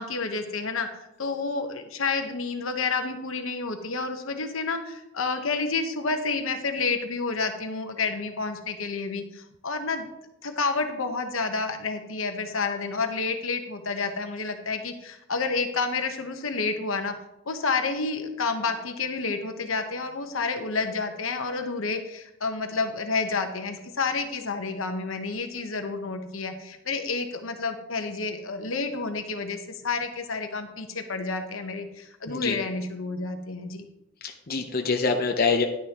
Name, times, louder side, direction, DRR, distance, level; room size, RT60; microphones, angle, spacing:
voice 1, 0.0-10.1 10.4-17.1 17.5-33.8, left 4 dB, 80° left, 6 dB, 1.1 m, -29 dB
voice 2, 34.2-35.7, left 4 dB, 45° left, 3 dB, 0.8 m, -25 dB
11.0 x 10.0 x 3.0 m, 0.87 s
head